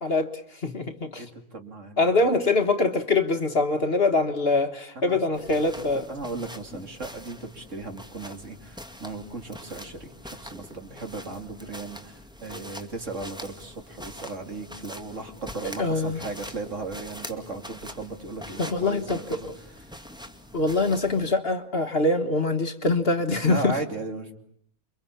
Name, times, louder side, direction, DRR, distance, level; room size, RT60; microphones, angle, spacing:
voice 1, 0.0-1.3 2.0-6.1 15.8-16.2 18.6-19.4 20.5-23.7, left 3 dB, 40° left, 7 dB, 1.6 m, -24 dB
voice 2, 1.2-2.2 4.9-5.2 6.1-19.5 23.4-24.4, right 3 dB, 55° right, 5 dB, 3.3 m, -36 dB
sound 1, 5.3-21.3, equal, 5° right, 2.0 m, -44 dB
29.0 x 24.0 x 8.6 m, 0.66 s
omnidirectional pair, 1.6 m